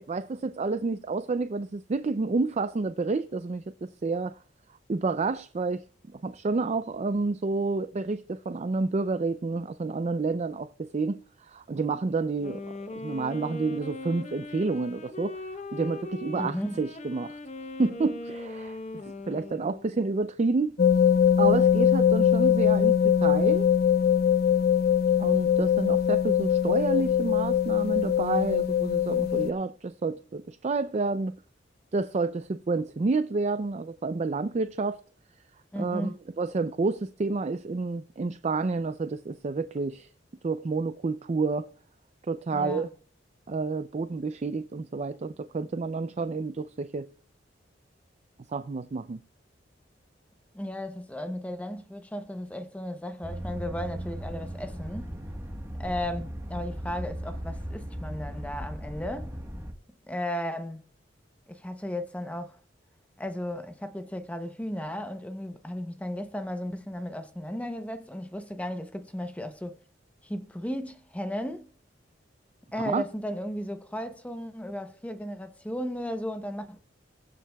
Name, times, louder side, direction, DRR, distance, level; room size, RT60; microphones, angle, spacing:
voice 1, 0.1-4.4 4.9-5.9 6.2-12.6 12.9-15.4 15.7-17.4 17.8-20.8 21.4-23.7 25.2-31.4 31.9-35.0 35.8-40.1 40.4-41.7 42.3-42.9 43.5-47.1 48.5-49.2 72.8-73.0, right 3 dB, 35° right, 0.4 m, -29 dB
Wind instrument woodwind instrument, 12.3-20.0, left 2 dB, 35° left, 0.8 m, -40 dB
voice 2, 16.3-16.9 35.7-36.2 42.5-42.9 50.5-55.1 55.8-59.3 60.1-60.8 61.5-62.6 63.2-69.8 70.2-71.7 72.7-76.8, equal, 5° left, 0.7 m, -35 dB
sound 1, 20.8-29.5, left 8 dB, 55° left, 0.4 m, -22 dB
sound 2, 53.2-59.7, equal, 15° right, 1.2 m, -37 dB
22.0 x 7.4 x 2.3 m
head